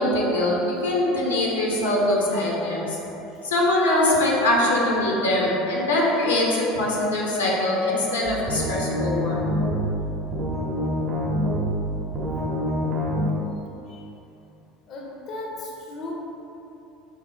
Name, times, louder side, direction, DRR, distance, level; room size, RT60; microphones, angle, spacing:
voice 1, 0.0-3.1 3.4-9.4, left 1 dB, 85° left, -3 dB, 0.7 m, -22 dB
sound 1, 8.2-13.3, equal, 40° right, 0.8 m, -26 dB
voice 2, 14.9-16.1, left 2 dB, 50° left, -2 dB, 0.6 m, -36 dB
4.8 x 2.1 x 4.2 m, 2.9 s
hypercardioid pair, 75°, 0 cm